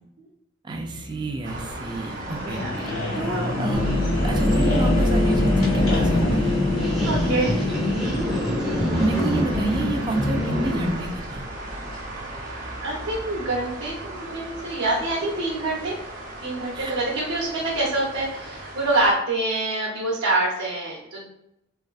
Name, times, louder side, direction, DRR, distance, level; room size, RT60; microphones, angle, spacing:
voice 1, 0.6-6.6 9.0-11.4 16.7-17.0, right 2 dB, 20° right, 2 dB, 0.3 m, -30 dB
sound 1, 0.7-10.5, left 2 dB, 85° left, 0.8 m, -28 dB
sound 2, 1.4-19.1, right 1 dB, 45° right, 0.8 m, -37 dB
voice 2, 2.4-2.8 3.3-3.6 7.0-7.6 12.8-16.0 16.4-21.2, right 2 dB, 85° right, -4 dB, 0.7 m, -26 dB
sound 3, 3.7-10.9, left 1 dB, ahead, 0.8 m, -24 dB
3.4 x 2.5 x 2.3 m, 0.80 s
head